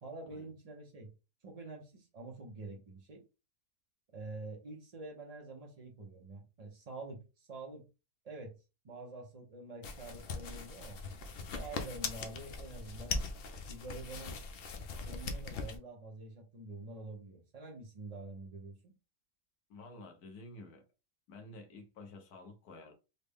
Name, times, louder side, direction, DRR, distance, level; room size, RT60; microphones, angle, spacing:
voice 1, 0.0-1.1 1.4-3.2 4.1-7.8 8.2-8.5 8.8-11.0 11.5-13.2 13.7-14.4 15.0-18.9, right 2 dB, 70° right, 0.3 m, -47 dB
sound 1, 9.8-15.8, left 4 dB, 90° left, 0.5 m, -40 dB
voice 2, 19.7-20.8 21.3-22.9, left 2 dB, 70° left, 1.3 m, -51 dB
4.0 x 2.1 x 3.4 m
omnidirectional pair, 1.7 m